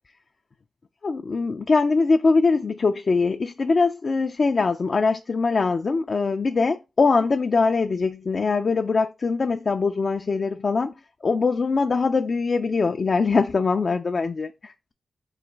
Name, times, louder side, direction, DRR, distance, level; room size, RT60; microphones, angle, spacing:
voice 1, 1.0-10.9 11.2-14.7, left 4 dB, 55° left, 0.3 m, -22 dB
3.9 x 2.3 x 4.5 m
cardioid pair, 45°, 0 cm